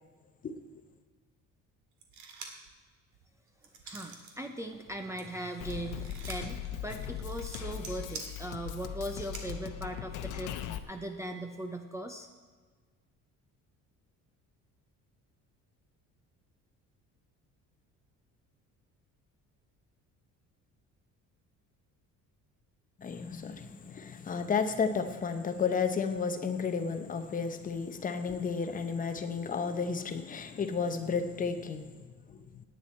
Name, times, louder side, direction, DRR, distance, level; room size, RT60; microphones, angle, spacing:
sound 1, 2.0-2.7 3.1-4.4 4.7-9.4, right 5 dB, 65° right, 2.0 m, -47 dB
voice 1, 3.8-12.3, right 1 dB, 10° right, 5 dB, 0.6 m, -39 dB
Drum kit, 5.6-10.8, left 10 dB, 70° left, 0.9 m, -39 dB
voice 2, 23.0-31.9 32.3-32.5, left 5 dB, 25° left, 7 dB, 0.8 m, -32 dB
17.0 x 9.9 x 4.3 m, 1.5 s
cardioid pair, 170°, 32 cm